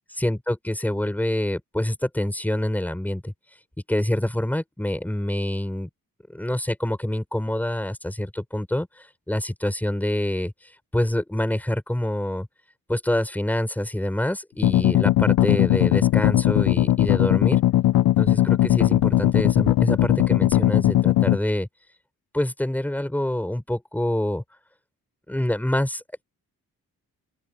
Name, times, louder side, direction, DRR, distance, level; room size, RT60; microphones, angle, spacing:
voice 1, 0.2-3.3 3.9-5.9 6.3-10.5 10.9-12.5 12.9-17.6 18.2-21.7 22.3-24.4 25.3-26.2, left 1 dB, 5° left, 6.5 m, -26 dB
sound 1, 14.6-21.4, left 14 dB, 75° left, 0.7 m, -19 dB
open air
wide cardioid pair, 160°, 35 cm